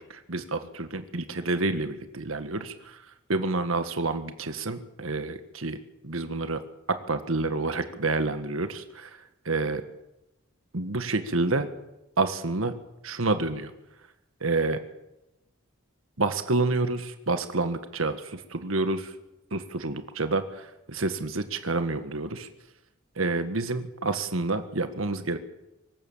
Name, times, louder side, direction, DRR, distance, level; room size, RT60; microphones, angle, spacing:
voice 1, 0.0-3.0 3.3-5.8 6.0-6.6 7.1-9.2 9.4-9.8 10.7-11.7 12.2-12.7 13.0-13.7 14.4-14.8 16.2-19.1 19.5-22.5 23.2-25.4, right 3 dB, 80° right, 9 dB, 1.6 m, -28 dB
25.0 x 14.5 x 7.3 m, 0.93 s
head